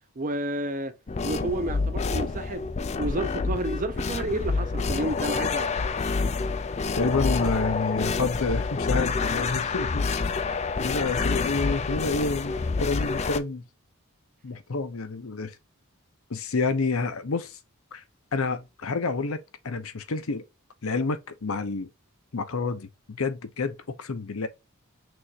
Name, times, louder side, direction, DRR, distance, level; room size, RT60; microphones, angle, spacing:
voice 1, 0.2-0.9 1.2-2.7 3.0-5.8, right 1 dB, 35° right, 0.6 m, -30 dB
sound 1, 1.1-13.4, left 4 dB, 30° left, 0.4 m, -28 dB
voice 2, 7.0-10.1 10.8-13.6 14.4-15.6 16.3-17.6 17.9-18.0 18.3-20.4 20.8-21.9 22.3-24.5, left 4 dB, 75° left, 0.7 m, -29 dB
6.1 x 2.6 x 2.9 m
head